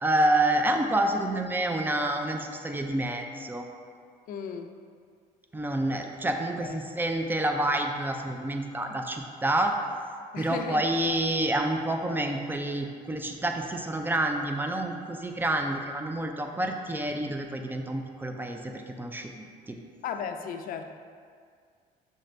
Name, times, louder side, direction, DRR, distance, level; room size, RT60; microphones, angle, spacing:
voice 1, 0.0-3.7 5.5-9.7 10.4-19.8, right 1 dB, 10° right, 4 dB, 0.4 m, -28 dB
voice 2, 4.3-4.7 6.6-6.8 10.3-10.9 20.0-20.8, left 7 dB, 55° left, 6 dB, 0.4 m, -35 dB
6.5 x 2.5 x 3.2 m, 2.1 s
cardioid pair, 110°, 17 cm